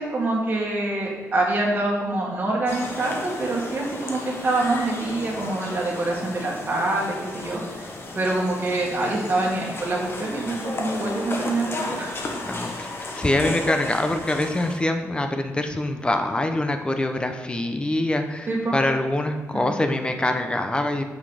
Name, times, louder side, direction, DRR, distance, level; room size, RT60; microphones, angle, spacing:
voice 1, 0.0-12.2 18.5-18.8 19.5-19.7, right 2 dB, 35° right, -4 dB, 1.7 m, -25 dB
sound 1, 2.7-14.8, left 2 dB, 45° left, 1.1 m, -34 dB
voice 2, 12.5-21.0, left 1 dB, 15° left, 6 dB, 0.7 m, -24 dB
6.0 x 5.5 x 5.0 m, 1.3 s
cardioid pair, 105°, 6 cm